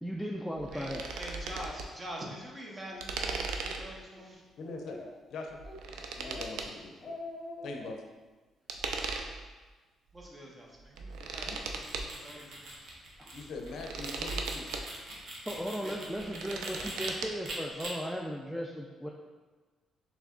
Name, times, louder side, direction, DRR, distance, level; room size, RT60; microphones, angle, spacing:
voice 1, 0.0-1.1 13.2-13.3 15.5-19.1, equal, ahead, -1 dB, 0.4 m, -36 dB
sound 1, 0.6-1.9 3.0-4.0 5.5-6.7 8.7-9.5 10.2-10.3 10.8-12.1 13.5-14.8 16.1-17.3, right 4 dB, 85° right, 0.4 m, -38 dB
voice 2, 0.7-4.4 10.1-12.7 15.8-16.9, equal, 25° right, -1 dB, 0.9 m, -45 dB
Speech, 2.9-3.0 3.5-3.8 4.1-4.2 4.6-5.2 5.6-5.8 6.2-6.6 6.9-7.9, left 2 dB, 40° left, 0.7 m, -44 dB
voice 3, 4.6-5.0 5.3-5.6 5.9-7.0 7.6-8.0 11.5-11.6 13.3-14.7, left 3 dB, 75° left, 2 dB, 0.5 m, -42 dB
sound 2, 11.6-17.1 17.4-17.9, right 2 dB, 65° right, 0.9 m, -43 dB
3.4 x 3.1 x 3.7 m, 1.3 s
cardioid pair, 90°, 0 cm